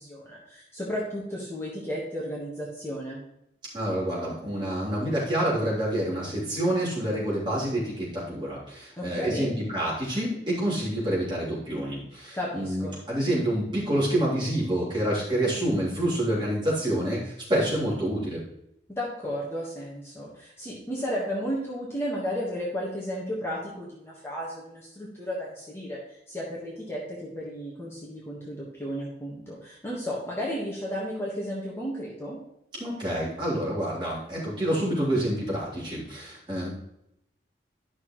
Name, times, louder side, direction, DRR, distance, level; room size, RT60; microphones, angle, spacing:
voice 1, 0.0-3.2 9.0-9.5 12.3-13.0 18.9-32.4, equal, 15° left, -5 dB, 1.4 m, -33 dB
voice 2, 3.7-18.4 32.8-36.7, right 1 dB, 25° right, -8 dB, 3.3 m, -27 dB
11.5 x 6.0 x 3.1 m, 0.80 s
head